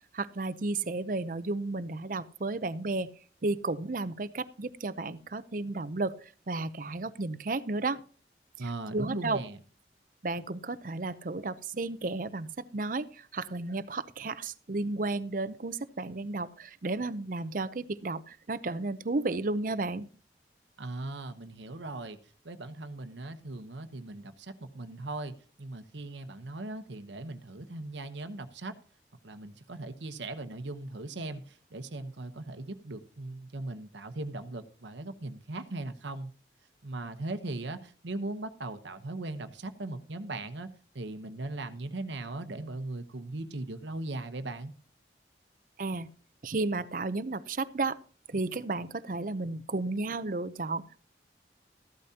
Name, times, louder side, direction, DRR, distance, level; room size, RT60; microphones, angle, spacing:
voice 1, 0.1-3.1 3.4-8.0 8.9-9.4 10.2-20.1 45.8-46.1 46.4-48.0 48.3-51.0, right 3 dB, 50° right, 15 dB, 0.6 m, -33 dB
voice 2, 8.6-9.6 20.8-22.2 22.4-28.8 29.2-36.3 36.8-40.7 40.9-44.7, right 2 dB, 85° right, 9 dB, 1.0 m, -39 dB
14.5 x 12.0 x 2.8 m, 0.39 s
head